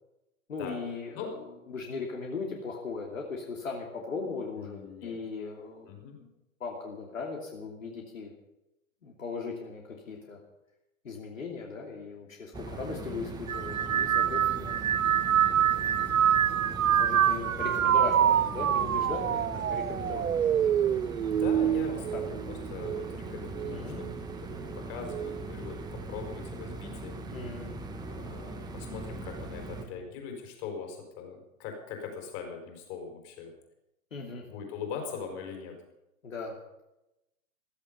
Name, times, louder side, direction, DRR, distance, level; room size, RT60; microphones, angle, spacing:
voice 1, 0.5-5.9 6.2-6.3 6.6-8.3 9.0-10.4 11.0-14.7 15.7-16.1 16.9-20.3 21.9-22.2 23.7-24.0 27.3-27.8 34.1-34.4 36.2-36.5, left 4 dB, 65° left, 0 dB, 2.9 m, -38 dB
voice 2, 4.5-5.2 5.9-6.2 12.9-13.2 21.3-23.9 24.6-27.1 28.1-33.5 34.5-35.7, left 6 dB, 35° left, 3 dB, 4.8 m, -41 dB
sound 1, 12.5-29.8, right 2 dB, 10° right, 1.6 m, -40 dB
sound 2, 13.5-23.1 23.5-24.1 25.1-25.4, right 9 dB, 70° right, 0.6 m, -26 dB
15.5 x 14.5 x 5.4 m, 0.90 s
figure-of-eight pair, 105°, 42 cm